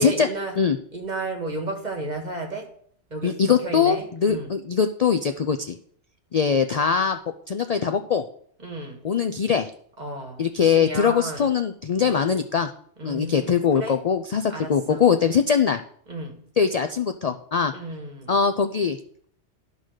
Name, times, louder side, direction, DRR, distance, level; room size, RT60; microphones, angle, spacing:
voice 1, 0.0-0.6 0.9-2.7 3.1-4.5 8.6-9.0 10.0-11.5 12.0-12.4 13.0-14.0 14.5-15.0 16.1-16.4 17.7-18.4, right 2 dB, 40° right, 2 dB, 1.7 m, -33 dB
voice 2, 3.2-5.8 6.3-7.2 7.5-8.2 9.0-9.7 10.4-12.7 13.0-15.8 16.6-17.7 18.3-19.0, left 6 dB, 55° left, 8 dB, 0.4 m, -22 dB
12.0 x 4.0 x 6.4 m, 0.62 s
omnidirectional pair, 1.2 m